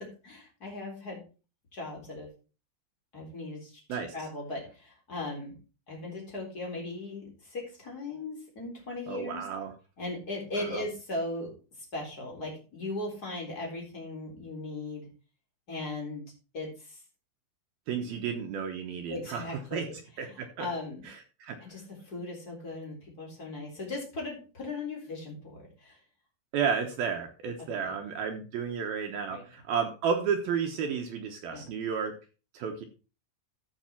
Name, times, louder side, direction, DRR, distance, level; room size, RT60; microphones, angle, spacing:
voice 1, 0.2-1.2 1.7-2.3 3.1-5.5 5.9-9.5 10.0-11.5 11.8-15.1 15.7-16.2 16.5-17.0 19.1-19.9 20.3-21.1 21.6-26.0 27.8-27.9 29.3-29.4 31.5-31.7, left 2 dB, 20° left, -1 dB, 3.6 m, -38 dB
voice 2, 9.1-9.7 10.6-10.8 17.9-19.4 19.7-19.9 20.2-20.7 21.0-21.6 26.5-32.1 32.5-32.8, right 6 dB, 75° right, 4 dB, 2.3 m, -32 dB
13.5 x 6.2 x 4.4 m, 0.33 s
omnidirectional pair, 5.7 m